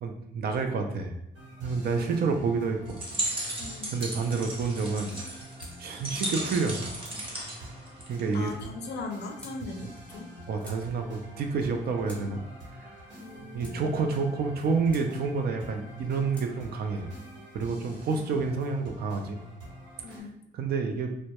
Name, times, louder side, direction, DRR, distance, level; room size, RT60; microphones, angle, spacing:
voice 1, 0.0-1.1 1.6-3.0 3.9-5.2 5.8-6.8 7.4-7.5 8.1-8.5 10.5-12.4 12.8-12.9 13.5-17.1 17.5-19.4 20.1-20.2 20.5-21.1, right 4 dB, 60° right, 5 dB, 0.4 m, -29 dB
sound 1, 1.3-20.2, equal, 80° right, 1.0 m, -46 dB
voice 2, 1.9-2.3 3.6-3.9 8.3-10.3 13.2-13.9 17.9-18.4 20.0-20.4, left 3 dB, 65° left, 4 dB, 0.5 m, -40 dB
sound 2, 2.9-8.5, right 1 dB, 30° right, 0.7 m, -36 dB
sound 3, 4.0-4.2 5.0-5.8 6.6-7.2 8.0-8.5 9.3-9.6 10.3-10.8 11.7-12.2 13.1-13.8 14.6-15.1 15.9-16.5, left 1 dB, 5° left, 0.6 m, -51 dB
2.1 x 2.1 x 2.8 m, 0.78 s
cardioid pair, 95°, 18 cm